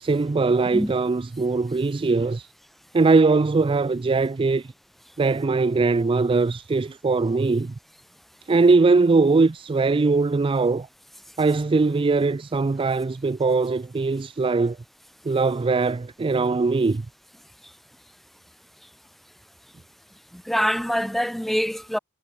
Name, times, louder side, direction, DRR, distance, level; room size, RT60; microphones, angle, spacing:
voice 1, 0.0-2.5 2.9-4.6 5.2-7.7 8.5-10.9 11.4-14.8 15.3-17.0, right 3 dB, 25° right, 0.3 m, -21 dB
voice 2, 20.3-22.0, equal, ahead, 0.9 m, -25 dB
head